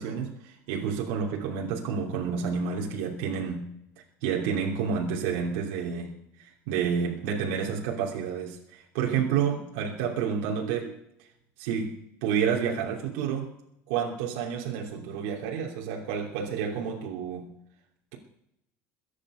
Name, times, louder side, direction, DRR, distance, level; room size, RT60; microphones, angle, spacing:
voice 1, 0.0-3.7 4.2-6.1 6.4-11.0 11.6-13.5 13.9-17.5, right 7 dB, 85° right, -2 dB, 3.0 m, -30 dB
22.5 x 9.9 x 5.1 m, 0.78 s
cardioid pair, 165°, 6 cm